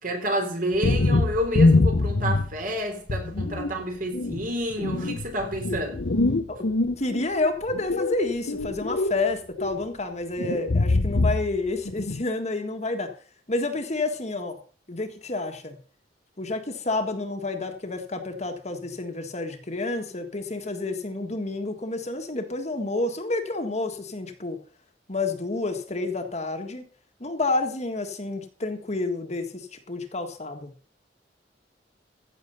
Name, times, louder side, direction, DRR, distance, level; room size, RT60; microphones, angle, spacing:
voice 1, 0.0-6.1, equal, 50° right, 3.8 m, -29 dB
sound 1, 0.7-2.6 3.1-3.7 4.1-7.3 7.7-9.2 9.5-9.8 10.4-11.6 11.9-12.2, left 2 dB, 70° left, 0.8 m, -24 dB
voice 2, 7.0-13.1 13.5-14.6 14.9-15.7 16.4-24.6 25.1-26.8 27.2-30.7, left 2 dB, 40° left, 1.7 m, -29 dB
15.0 x 7.0 x 5.4 m
head